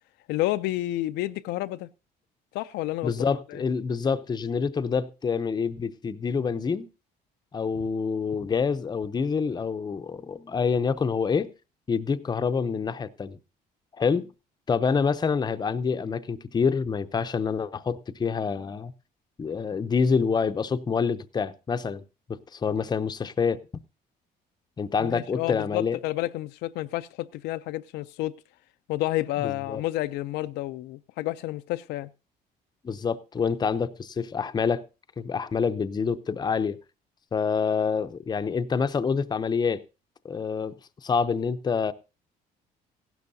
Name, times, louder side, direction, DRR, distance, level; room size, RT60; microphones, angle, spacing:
voice 1, 0.3-1.9 2.5-3.6 25.0-28.3 28.9-32.1, left 16 dB, 90° left, 0.5 m, -30 dB
voice 2, 3.0-6.9 7.5-11.5 11.9-13.4 14.0-14.3 14.7-18.9 19.4-22.0 22.5-23.6 24.8-26.0 29.4-29.8 32.8-34.8 35.2-36.8 37.3-39.8 40.2-40.7 41.0-41.9, left 5 dB, 25° left, 0.6 m, -27 dB
16.0 x 12.0 x 2.7 m
cardioid pair, 110°, 17 cm